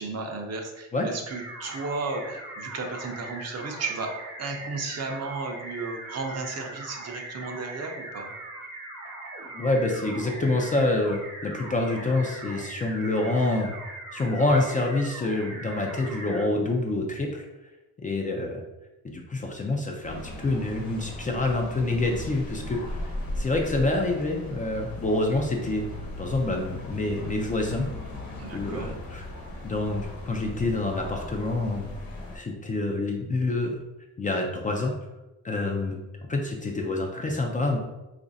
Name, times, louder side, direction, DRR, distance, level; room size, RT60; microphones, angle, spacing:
voice 1, 0.0-4.1 4.4-8.3 28.3-28.9, right 3 dB, 50° right, 3 dB, 0.6 m, -34 dB
sound 1, 1.3-16.4, right 2 dB, 70° right, 1.0 m, -40 dB
voice 2, 9.5-13.7 14.1-17.5 18.0-18.6 19.0-25.8 26.2-27.9 28.5-29.3 29.6-31.9 32.3-33.8 34.2-34.9 35.4-36.0 36.3-37.8, left 2 dB, 25° left, 1 dB, 0.4 m, -27 dB
Rolling suitace, 20.0-32.4, left 1 dB, 85° left, 1.0 m, -38 dB
3.1 x 2.5 x 3.9 m, 1.0 s
cardioid pair, 145°, 34 cm